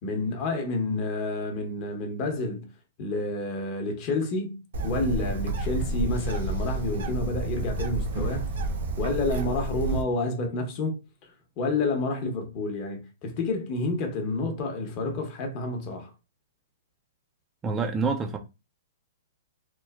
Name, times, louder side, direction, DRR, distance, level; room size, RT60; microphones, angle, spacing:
voice 1, 0.0-2.7 3.0-8.5 9.0-11.3 11.6-16.1, left 2 dB, 35° left, 0.8 m, -29 dB
Bird, 4.7-10.0, right 2 dB, 75° right, 0.7 m, -30 dB
voice 2, 17.6-18.4, right 4 dB, 15° right, 0.3 m, -27 dB
3.0 x 2.1 x 2.2 m
hypercardioid pair, 140°, 0 cm